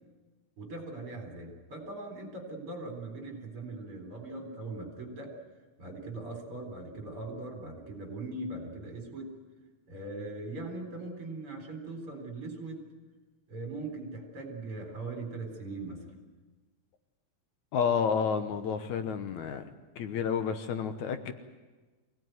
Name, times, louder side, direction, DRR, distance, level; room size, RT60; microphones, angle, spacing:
voice 1, 0.6-5.3 5.8-9.3 9.9-12.8 13.5-16.1, right 2 dB, 45° right, 2 dB, 4.9 m, -40 dB
voice 2, 17.7-19.7 20.0-21.3, left 6 dB, 75° left, 8 dB, 2.4 m, -30 dB
24.0 x 17.5 x 9.4 m, 1.3 s
omnidirectional pair, 3.6 m